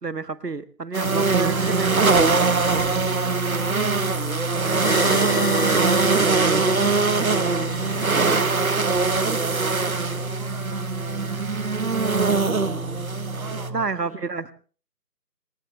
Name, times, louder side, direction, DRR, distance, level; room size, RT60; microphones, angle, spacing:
voice 1, 0.0-2.4 13.7-14.5, right 4 dB, 75° right, 13 dB, 1.6 m, -29 dB
sound 1, 0.9-13.7, right 4 dB, 60° right, 1.5 m, -22 dB
sound 2, 1.0-13.9, right 2 dB, 55° left, 3.5 m, -32 dB
voice 2, 1.3-2.6 3.0-4.0 4.5-11.8 12.4-12.9 13.2-14.4, right 4 dB, 20° right, 3 dB, 2.5 m, -44 dB
sound 3, 4.8-9.4, left 2 dB, 30° left, 1.1 m, -32 dB
26.5 x 15.0 x 3.2 m, 0.40 s
figure-of-eight pair, 165°, 49 cm